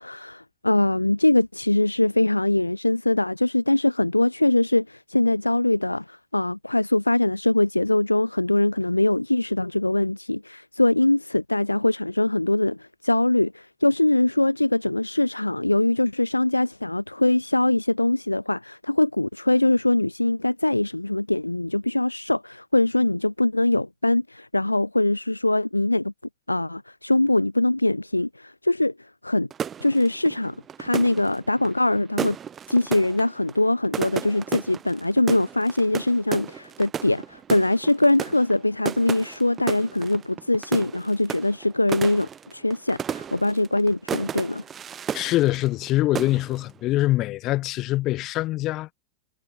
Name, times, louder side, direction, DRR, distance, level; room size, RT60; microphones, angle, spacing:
voice 1, 0.0-26.1 26.5-29.5 29.8-32.4 32.7-44.6, left 2 dB, 85° left, 0.8 m, -22 dB
sound 1, 29.5-45.9 46.2-46.7, right 8 dB, 25° right, 0.5 m, -34 dB
voice 2, 45.1-48.9, left 17 dB, 35° left, 1.4 m, -24 dB
figure-of-eight pair, 90°, 0 cm